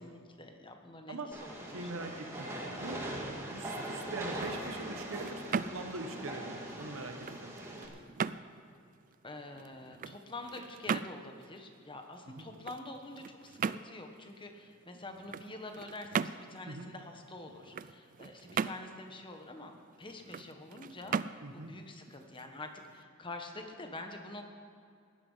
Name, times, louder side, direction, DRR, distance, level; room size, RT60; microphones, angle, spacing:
voice 1, 0.0-2.1 9.2-24.4, left 2 dB, 25° left, 4 dB, 1.3 m, -46 dB
Train, 1.3-7.9, right 1 dB, 15° right, 2.2 m, -41 dB
voice 2, 1.7-2.5 2.8-3.0 3.5-7.6 12.3-12.5 16.7-16.9 21.4-21.7, right 2 dB, 70° right, 6 dB, 1.2 m, -42 dB
sound 1, 4.2-23.0, right 6 dB, 40° right, 0.3 m, -40 dB
17.0 x 11.5 x 5.7 m, 2.4 s
head